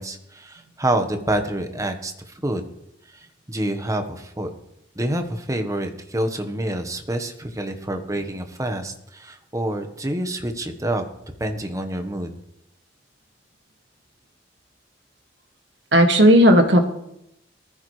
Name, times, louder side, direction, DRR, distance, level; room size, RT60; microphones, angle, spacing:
voice 1, 0.0-2.6 3.1-4.5 4.9-11.0 11.4-12.3, right 1 dB, 20° right, 6 dB, 1.3 m, -27 dB
voice 2, 15.9-16.9, equal, 80° right, 4 dB, 1.9 m, -13 dB
19.5 x 14.0 x 3.3 m, 0.80 s
head